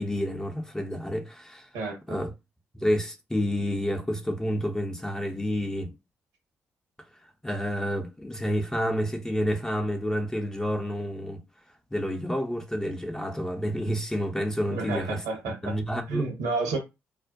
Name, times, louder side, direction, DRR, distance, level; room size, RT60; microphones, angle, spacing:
voice 1, 0.0-1.7 2.1-2.3 2.8-5.9 7.4-11.4 11.9-15.2 15.6-16.3, equal, 10° left, 0.6 m, -29 dB
voice 2, 1.7-2.2 14.7-15.8 16.1-16.8, right 3 dB, 70° right, 1.0 m, -30 dB
2.4 x 2.1 x 2.5 m
figure-of-eight pair, 40°, 7 cm